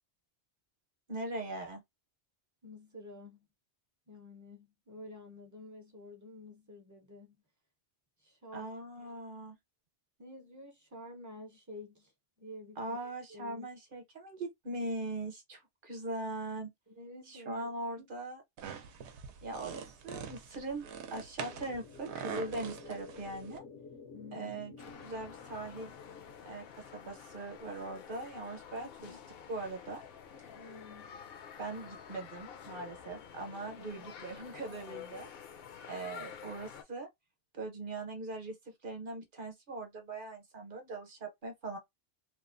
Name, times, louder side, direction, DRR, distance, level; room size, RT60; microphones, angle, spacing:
voice 1, 1.1-1.8 8.5-9.6 12.8-16.7 17.3-18.4 19.4-23.6 24.3-24.7 25.0-25.9 26.5-29.1 29.5-30.0 31.6-35.3 35.9-37.1 37.5-38.5 38.8-41.8, right 2 dB, 50° right, 0.9 m, -40 dB
voice 2, 2.6-3.5 4.1-7.4 8.2-8.8 10.2-12.1 12.4-13.0 13.3-13.7 16.9-17.7 18.0-18.1 24.1-24.6 28.8-29.3 30.5-31.1 33.8-34.1, left 1 dB, 25° right, 0.4 m, -50 dB
sound 1, 18.6-23.6, right 7 dB, 75° right, 0.8 m, -44 dB
sound 2, 21.4-27.5, left 5 dB, 85° left, 1.0 m, -52 dB
sound 3, 24.8-36.8, left 8 dB, 65° left, 0.7 m, -49 dB
2.9 x 2.0 x 2.4 m
omnidirectional pair, 1.2 m